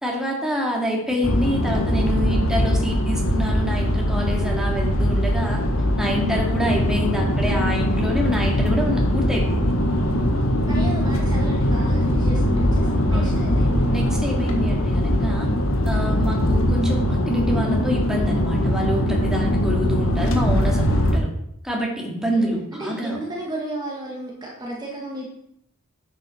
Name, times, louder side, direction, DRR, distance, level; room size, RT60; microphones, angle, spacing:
voice 1, 0.0-5.6 6.0-9.7 13.1-13.4 13.9-15.5 15.9-21.3 21.6-23.2, equal, 5° right, -1 dB, 2.2 m, -26 dB
sound 1, 1.2-21.2, equal, 70° left, 1.6 m, -21 dB
voice 2, 10.3-13.9 22.4-25.2, right 1 dB, 20° right, -3 dB, 1.8 m, -33 dB
10.5 x 8.0 x 4.4 m, 0.73 s
head